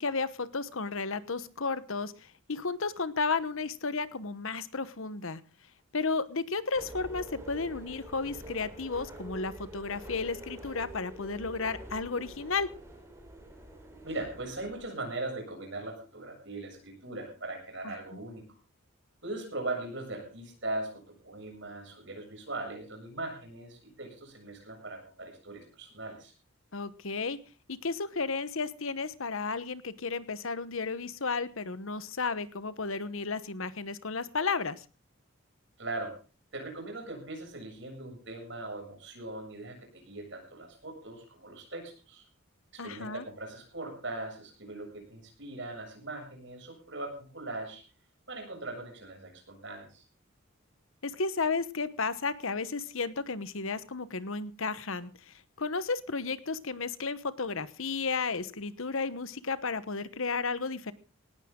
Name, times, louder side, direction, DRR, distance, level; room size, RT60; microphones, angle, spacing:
voice 1, 0.0-2.1 2.5-5.4 5.9-12.7 17.8-17.9 26.7-27.4 27.7-34.8 42.8-43.2 51.0-55.1 55.6-60.9, left 4 dB, 75° left, 15 dB, 1.1 m, -33 dB
sound 1, 6.7-14.9, right 1 dB, 10° right, 4.0 m, -46 dB
voice 2, 14.0-18.4 19.2-26.3 35.8-36.2 36.5-42.2 42.8-47.8 48.3-50.0, right 2 dB, 55° right, 2 dB, 7.4 m, -40 dB
18.5 x 15.0 x 3.8 m, 0.35 s
head